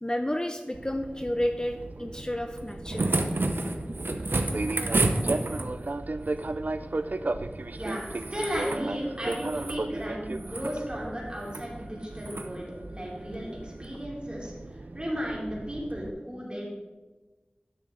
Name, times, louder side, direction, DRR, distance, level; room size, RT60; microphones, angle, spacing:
voice 1, 0.0-3.2, left 1 dB, 20° left, 6 dB, 0.4 m, -31 dB
Fixed-wing aircraft airplane, 0.7-16.1, right 2 dB, 55° right, 0.3 m, -36 dB
sound 1, 2.6-5.9 7.8-8.8 9.2-9.8 10.3-10.8 11.4-11.7 12.2-12.5 13.8-13.9, right 2 dB, 85° right, 0.7 m, -30 dB
voice 2, 7.7-14.5 14.9-16.7, equal, 30° right, -4 dB, 2.7 m, -34 dB
10.5 x 6.5 x 3.2 m, 1.2 s
wide cardioid pair, 50°, 3 cm